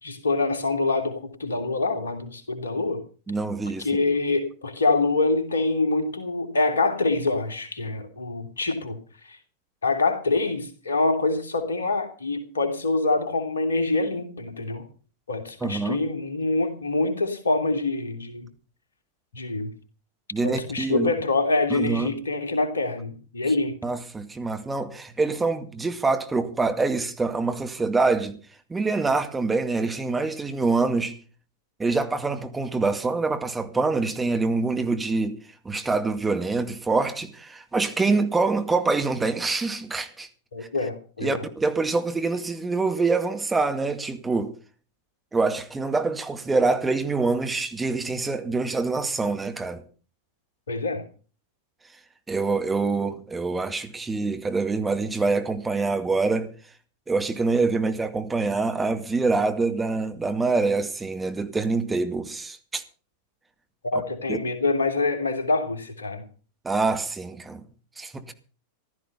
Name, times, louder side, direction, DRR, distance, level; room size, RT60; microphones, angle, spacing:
voice 1, 0.0-3.0 3.8-9.0 9.3-9.4 9.8-14.9 15.3-18.5 19.3-19.7 20.4-23.8 40.5-41.4 50.7-51.0 63.8-66.2, left 3 dB, 70° left, 3.0 m, -25 dB
voice 2, 3.3-3.9 15.6-16.0 20.3-21.1 21.7-22.1 23.8-28.4 28.7-31.2 31.8-35.4 35.7-40.3 41.2-44.5 45.3-49.8 52.3-56.5 57.1-62.8 63.9-64.0 64.3-64.4 66.6-67.6 68.0-68.3, right 3 dB, 10° right, 2.1 m, -25 dB
15.0 x 13.5 x 5.6 m
figure-of-eight pair, 90°, 0 cm